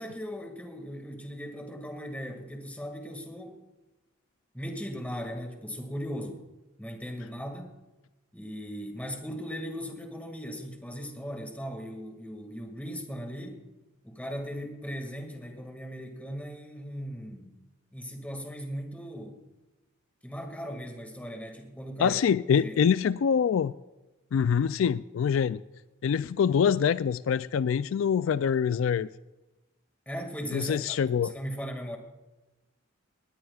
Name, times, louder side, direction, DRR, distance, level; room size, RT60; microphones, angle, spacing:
voice 1, 0.0-3.6 4.5-6.4 6.8-7.7 8.3-13.6 14.0-17.6 17.9-19.4 20.2-22.2 22.5-22.9 30.1-32.0, equal, 5° left, 4 dB, 2.0 m, -38 dB
voice 2, 22.0-23.7 24.3-25.6 26.0-29.1 30.5-31.3, left 7 dB, 70° left, 15 dB, 0.3 m, -25 dB
20.0 x 18.0 x 2.4 m, 1.1 s
head